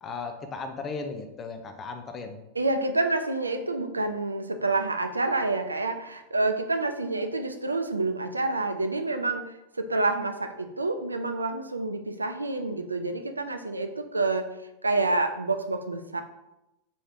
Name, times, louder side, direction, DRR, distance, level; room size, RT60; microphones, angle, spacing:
voice 1, 0.0-2.4, left 4 dB, 25° left, 6 dB, 0.5 m, -36 dB
voice 2, 2.5-14.5 14.8-16.2, right 2 dB, 80° right, 7 dB, 0.4 m, -28 dB
4.2 x 3.2 x 3.6 m, 0.92 s
figure-of-eight pair, 90°, 0 cm